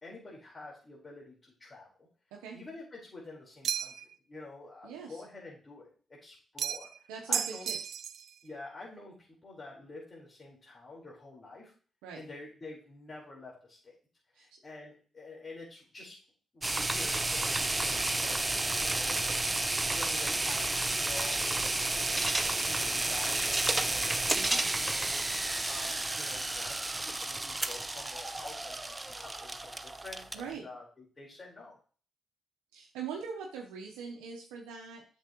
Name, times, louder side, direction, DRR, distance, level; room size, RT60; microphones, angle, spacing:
voice 1, 0.0-2.1 2.5-3.9 4.3-7.7 8.4-11.7 12.1-13.9 14.4-16.2 16.5-18.4 18.7-21.9 22.1-31.8, left 3 dB, 40° left, -4 dB, 4.2 m, -48 dB
sound 1, 3.6-4.1 6.6-7.0 7.3-8.3, right 9 dB, 70° right, 0.4 m, -33 dB
voice 2, 4.8-5.2 7.1-7.8 12.0-12.2 14.3-14.5 24.3-24.6 30.3-30.7 32.7-35.0, right 6 dB, 90° right, -1 dB, 0.9 m, -42 dB
sound 2, 16.6-30.5, right 2 dB, 20° right, 0.7 m, -31 dB
8.2 x 6.9 x 3.0 m, 0.41 s
supercardioid pair, 50°, 0 cm